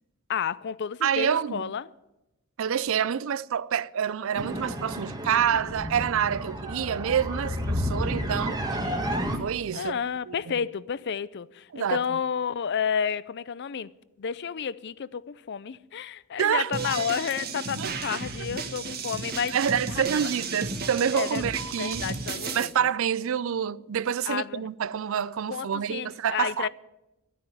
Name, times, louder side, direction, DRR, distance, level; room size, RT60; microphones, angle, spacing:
voice 1, 0.3-1.9 8.8-9.1 9.7-13.9 14.2-19.6 19.9-20.0 21.1-21.4 21.8-22.9 24.3-24.6 25.5-26.7, left 7 dB, 50° left, 0.5 m, -31 dB
voice 2, 1.0-1.7 2.6-8.6 9.4-10.0 10.3-10.4 11.7-12.0 16.4-16.7 17.0-17.1 17.8-18.2 19.5-22.1 22.5-26.7, right 8 dB, 65° right, 0.4 m, -27 dB
sound 1, 4.4-9.4, equal, 20° right, 1.4 m, -31 dB
sound 2, 16.7-22.6, right 4 dB, 45° right, 1.5 m, -34 dB
sound 3, 16.7-17.3 19.5-19.6 21.6-22.2, right 4 dB, 85° right, 1.7 m, -38 dB
12.0 x 9.6 x 9.2 m
head